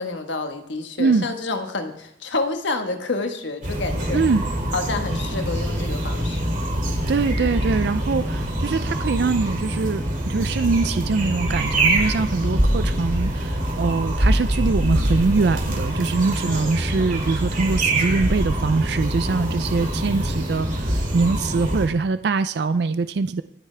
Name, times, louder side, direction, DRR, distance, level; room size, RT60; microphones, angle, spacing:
voice 1, 0.0-4.2 4.7-6.5 7.4-7.7 16.5-16.9, left 3 dB, 80° left, 6 dB, 1.4 m, -29 dB
voice 2, 1.0-1.3 4.1-4.5 7.1-23.4, right 4 dB, 60° right, 12 dB, 0.4 m, -23 dB
sound 1, 3.6-21.9, right 1 dB, 45° right, 2.7 m, -24 dB
24.5 x 8.3 x 3.3 m, 0.79 s
head